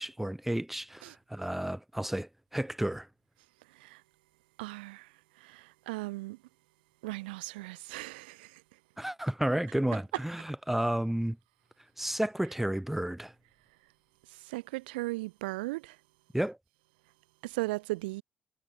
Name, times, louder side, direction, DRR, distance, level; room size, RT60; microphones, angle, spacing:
voice 1, 0.0-3.1 9.0-11.4 12.0-13.3 16.3-16.6, right 1 dB, 5° right, 0.6 m, -32 dB
voice 2, 4.6-5.1 5.4-6.4 7.0-8.6 14.3-16.0 17.4-18.2, right 22 dB, 75° right, 0.4 m, -37 dB
hypercardioid pair, 50°, 5 cm